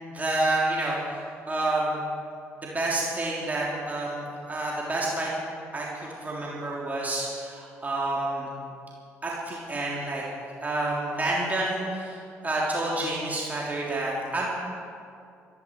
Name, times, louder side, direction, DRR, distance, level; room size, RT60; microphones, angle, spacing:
voice 1, 0.1-2.0 2.6-5.5 5.7-8.5 9.2-10.2 10.6-14.5, right 2 dB, 20° right, -5 dB, 3.6 m, -29 dB
26.0 x 11.0 x 4.8 m, 2.4 s
figure-of-eight pair, 45°, 7 cm